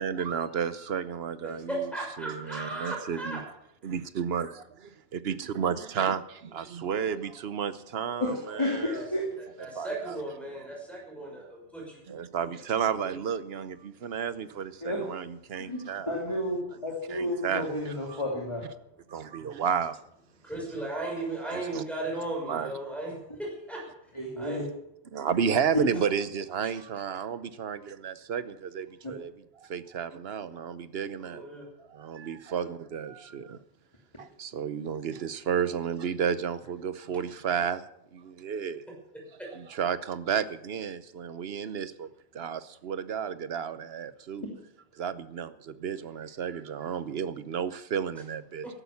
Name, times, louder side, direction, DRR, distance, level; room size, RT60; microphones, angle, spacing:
voice 1, 0.0-1.9 2.2-3.4 3.8-9.0 9.7-10.2 12.1-16.1 17.1-18.2 19.1-20.0 21.5-21.8 22.5-22.7 24.4-24.5 25.1-29.3 29.6-31.4 31.8-33.6 34.2-38.8 39.5-44.5 44.9-48.7, right 7 dB, 65° right, 1.1 m, -32 dB
voice 2, 1.7-3.4 8.4-9.0 9.4-12.0 20.4-23.1 23.4-23.8 24.4-24.6 26.6-26.7 31.2-31.7, right 2 dB, ahead, 5.8 m, -36 dB
voice 3, 8.6-9.2 14.8-15.0 15.6-18.6 24.1-24.6 25.7-25.8, left 1 dB, 25° left, 2.8 m, -31 dB
14.0 x 11.0 x 7.1 m
omnidirectional pair, 1.1 m